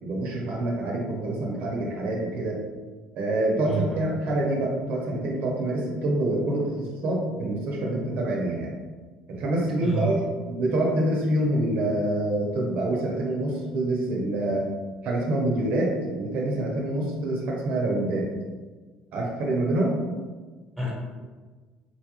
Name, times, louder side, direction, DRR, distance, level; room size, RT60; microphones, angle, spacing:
voice 1, 0.0-2.6 3.1-6.8 7.0-8.8 9.3-14.7 15.0-18.3 19.1-19.9, right 1 dB, 60° right, -2 dB, 0.7 m, -26 dB
voice 2, 3.6-4.0 9.8-10.3 20.8-20.9, right 3 dB, ahead, -5 dB, 1.3 m, -29 dB
4.1 x 2.4 x 3.0 m, 1.4 s
cardioid pair, 120°, 3 cm